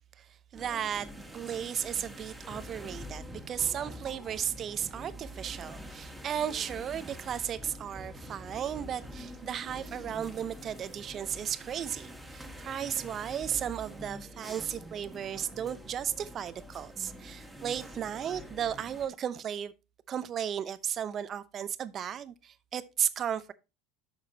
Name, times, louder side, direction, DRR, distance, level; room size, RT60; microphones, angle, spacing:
sound 1, 0.5-19.1, equal, 5° right, 2.2 m, -45 dB
voice 1, 0.5-19.7 20.1-23.5, right 9 dB, 40° right, 0.8 m, -35 dB
11.0 x 6.5 x 2.8 m
hypercardioid pair, 85°, 0 cm